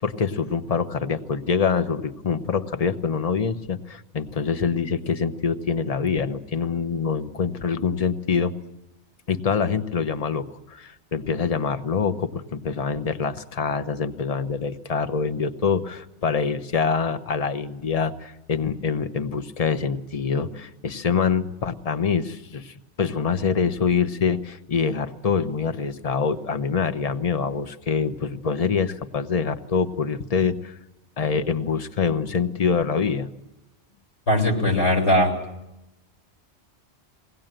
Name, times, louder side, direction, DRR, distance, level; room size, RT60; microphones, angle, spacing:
voice 1, 0.0-8.5 9.3-30.8 31.2-33.3, left 6 dB, 35° left, 10 dB, 0.9 m, -25 dB
voice 2, 34.3-35.4, left 1 dB, 75° left, 1 dB, 3.7 m, -19 dB
22.0 x 17.5 x 8.9 m, 0.92 s
omnidirectional pair, 1.2 m